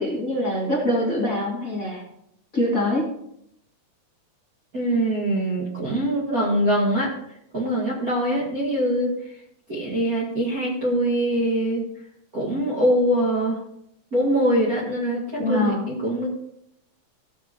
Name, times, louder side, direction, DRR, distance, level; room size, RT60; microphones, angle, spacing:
voice 1, 0.0-2.0 2.5-3.1 15.4-15.8, left 1 dB, 25° left, -6 dB, 2.3 m, -24 dB
voice 2, 4.7-7.1 7.5-9.3 9.7-11.8 12.3-13.6 14.1-16.3, right 1 dB, 30° right, -6 dB, 1.8 m, -23 dB
16.5 x 7.4 x 3.1 m, 0.76 s
omnidirectional pair, 4.0 m